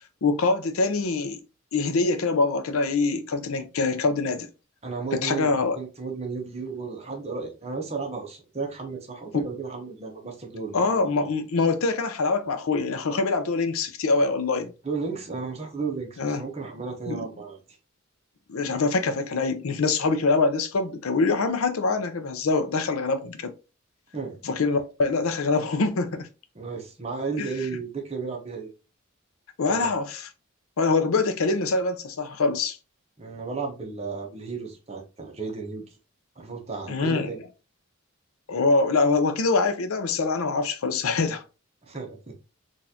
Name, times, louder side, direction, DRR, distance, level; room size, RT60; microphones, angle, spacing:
voice 1, 0.2-1.4 1.7-4.5 5.2-5.8 9.3-9.4 10.7-14.7 16.2-16.4 17.1-17.3 18.5-23.5 24.4-26.3 27.4-27.5 29.6-30.3 30.8-32.8 36.9-37.3 38.5-41.4, left 3 dB, 80° left, 0.6 m, -24 dB
voice 2, 4.8-11.3 14.8-17.6 24.1-24.4 26.5-28.7 29.6-29.9 33.2-35.9 36.4-37.4 41.8-42.3, right 4 dB, 30° right, 0.9 m, -34 dB
4.0 x 2.5 x 2.7 m
head